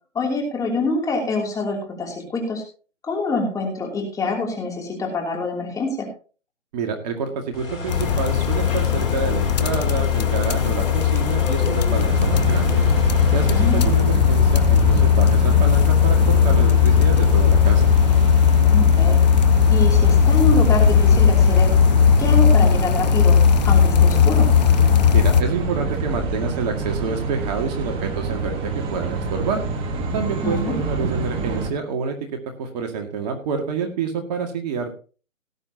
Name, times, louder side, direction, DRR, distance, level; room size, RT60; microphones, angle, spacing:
voice 1, 0.1-2.6 3.0-6.1 13.5-13.9 18.7-19.2 19.7-21.7 22.2-24.5 30.4-30.8, left 3 dB, 10° left, 1 dB, 2.9 m, -25 dB
voice 2, 6.7-12.8 13.3-17.8 25.1-29.6 30.1-32.2 32.6-34.9, right 5 dB, 30° right, 4 dB, 2.0 m, -28 dB
sound 1, 7.5-14.0, left 2 dB, 80° left, 4.4 m, -30 dB
sound 2, 7.9-25.4, left 8 dB, 35° left, 0.8 m, -17 dB
sound 3, 12.0-31.7, right 3 dB, 15° right, 1.3 m, -26 dB
18.0 x 9.7 x 2.9 m, 0.37 s
hypercardioid pair, 145°, 39 cm